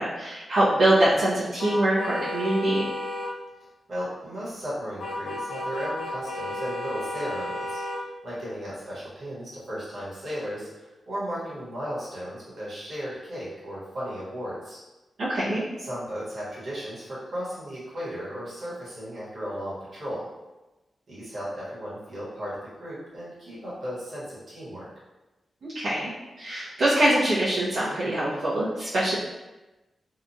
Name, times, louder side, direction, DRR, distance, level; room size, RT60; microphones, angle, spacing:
voice 1, 0.0-2.9 15.2-15.6 25.7-26.1 26.4-29.1, right 1 dB, 65° right, -12 dB, 0.7 m, -23 dB
sound 1, 1.6-3.3 5.0-8.0, left 1 dB, 80° left, 0.6 m, -33 dB
voice 2, 3.9-7.8 8.2-14.8 15.8-20.3 21.1-24.9, equal, 45° right, -9 dB, 1.2 m, -35 dB
2.8 x 2.3 x 2.6 m, 1.1 s
wide cardioid pair, 165°, 0 cm